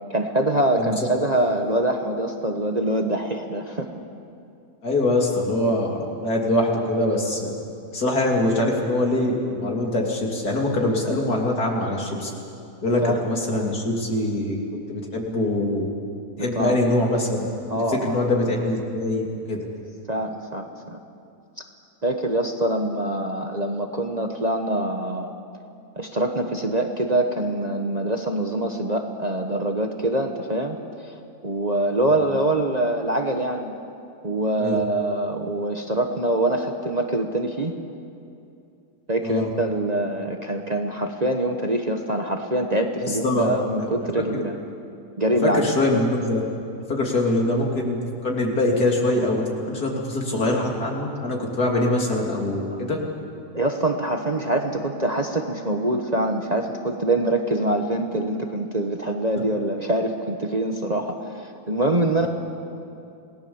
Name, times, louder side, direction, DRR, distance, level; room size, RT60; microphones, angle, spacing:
voice 1, 0.1-3.9 13.0-13.2 13.5-13.7 16.4-16.8 17.7-18.2 20.1-21.0 22.0-25.3 26.0-30.8 31.0-31.1 31.4-33.7 34.2-37.8 39.1-44.6 45.2-45.6 53.5-62.3, right 1 dB, 30° right, 3 dB, 1.2 m, -24 dB
voice 2, 4.8-7.5 7.9-12.3 12.8-14.6 14.9-15.9 16.4-17.4 17.7-19.7 34.6-34.8 39.2-39.5 43.0-43.5 43.8-43.9 44.3-44.4 45.4-46.4 46.9-48.0 48.2-53.0 62.2-62.3, left 1 dB, 70° left, -1 dB, 3.5 m, -23 dB
27.5 x 18.5 x 7.1 m, 2.6 s
omnidirectional pair, 1.7 m